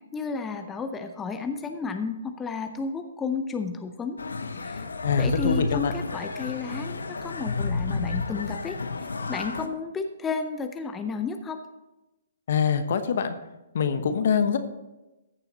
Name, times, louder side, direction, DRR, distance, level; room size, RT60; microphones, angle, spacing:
voice 1, 0.1-4.2 4.6-4.9 5.2-8.8 9.3-11.6, left 5 dB, 15° left, 7 dB, 0.6 m, -32 dB
sound 1, 4.2-9.7, left 3 dB, 85° left, 0.8 m, -31 dB
voice 2, 5.0-5.9 12.5-13.4 13.7-14.6, left 6 dB, 60° left, 9 dB, 1.0 m, -24 dB
14.5 x 6.9 x 4.1 m, 1.0 s
hypercardioid pair, 135°, 0 cm